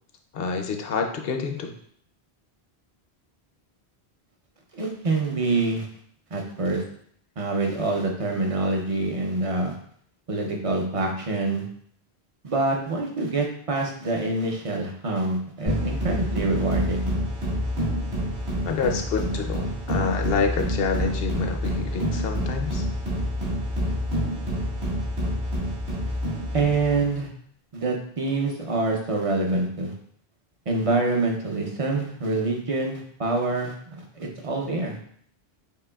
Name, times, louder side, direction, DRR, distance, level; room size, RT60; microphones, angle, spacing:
voice 1, 0.3-1.7 18.6-22.8, left 5 dB, 70° left, 4 dB, 0.7 m, -27 dB
voice 2, 4.7-5.9 6.3-6.8 7.4-9.8 10.3-11.7 12.4-17.1 26.5-27.3 27.7-29.9 30.7-35.0, right 3 dB, 40° right, 1 dB, 0.7 m, -26 dB
sound 1, 15.7-27.2, equal, 65° right, 2.0 m, -28 dB
6.7 x 2.9 x 2.3 m, 0.63 s
omnidirectional pair, 1.1 m